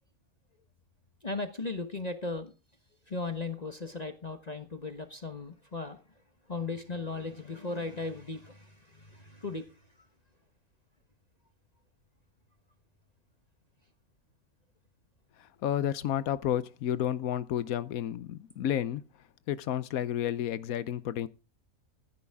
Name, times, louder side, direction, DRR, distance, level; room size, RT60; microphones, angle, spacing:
voice 1, 1.2-2.5 3.1-6.0 6.5-9.7, left 3 dB, 30° left, 1.2 m, -37 dB
voice 2, 15.6-19.0 19.5-21.3, left 11 dB, 80° left, 1.2 m, -31 dB
14.5 x 11.0 x 3.6 m
omnidirectional pair, 1.5 m